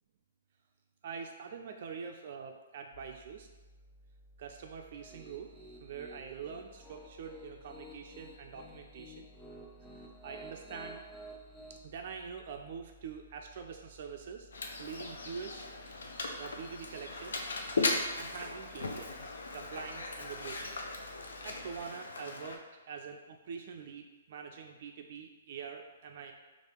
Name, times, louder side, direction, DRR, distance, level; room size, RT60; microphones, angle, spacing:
voice 1, 1.0-3.5 4.4-5.5 5.8-9.3 9.9-11.0 11.7-14.5 14.8-15.7 16.4-17.4 17.8-20.7 21.1-26.3, right 6 dB, 55° right, 3 dB, 0.3 m, -45 dB
sound 1, 2.9-21.8, equal, 55° left, 0.9 m, -60 dB
Piano, 4.9-11.8, right 1 dB, 10° left, 0.5 m, -51 dB
Mechanisms, 14.5-22.6, left 3 dB, 80° left, 0.5 m, -38 dB
3.3 x 2.4 x 4.4 m, 1.2 s
hypercardioid pair, 140°, 0 cm